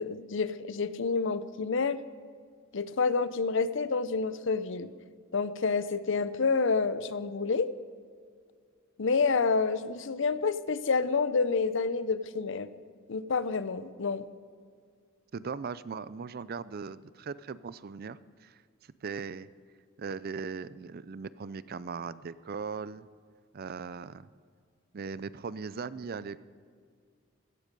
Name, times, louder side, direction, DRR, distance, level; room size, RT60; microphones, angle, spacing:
voice 1, 0.0-2.0 2.7-4.9 5.3-7.7 9.0-12.7 13.1-14.3, left 4 dB, 60° left, 15 dB, 0.6 m, -28 dB
voice 2, 15.3-18.6 19.0-19.5 20.0-23.1 23.5-24.3 24.9-26.4, right 5 dB, 45° right, 17 dB, 0.4 m, -39 dB
16.0 x 13.5 x 5.3 m, 2.1 s
head